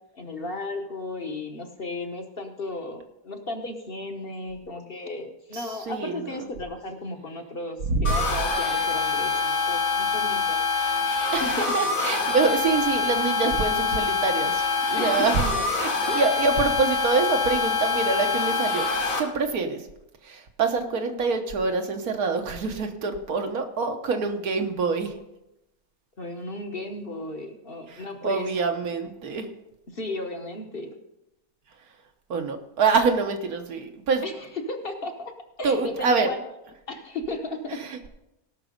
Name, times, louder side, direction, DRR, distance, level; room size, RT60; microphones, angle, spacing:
voice 1, 0.0-10.6 11.1-11.7 13.4-13.5 15.0-15.6 16.1-16.2 26.2-28.5 29.9-30.9 34.2-35.3 35.6-36.4 36.9-37.8, left 2 dB, 45° left, 4 dB, 1.1 m, -35 dB
voice 2, 5.5-6.3 7.9-8.2 11.3-18.9 19.2-19.9 20.2-25.1 27.9-29.5 32.3-34.2 35.6-36.3 37.7-38.1, right 4 dB, 80° right, 5 dB, 1.6 m, -26 dB
sound 1, 8.1-19.2, left 4 dB, 70° left, 1.8 m, -25 dB
17.5 x 6.0 x 5.2 m, 0.92 s
omnidirectional pair, 1.5 m